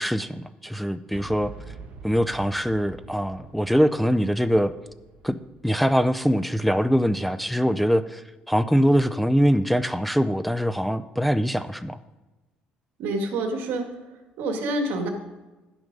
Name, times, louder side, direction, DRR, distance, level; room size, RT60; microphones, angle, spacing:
voice 1, 0.0-1.5 2.0-4.7 5.2-5.4 5.6-12.0, equal, ahead, 12 dB, 0.3 m, -23 dB
Boom, 1.1-7.0, right 4 dB, 45° right, 1.3 m, -46 dB
voice 2, 13.0-13.9 14.4-15.1, right 2 dB, 75° right, 4 dB, 1.7 m, -27 dB
11.5 x 6.2 x 5.2 m, 1.1 s
cardioid pair, 120°, 3 cm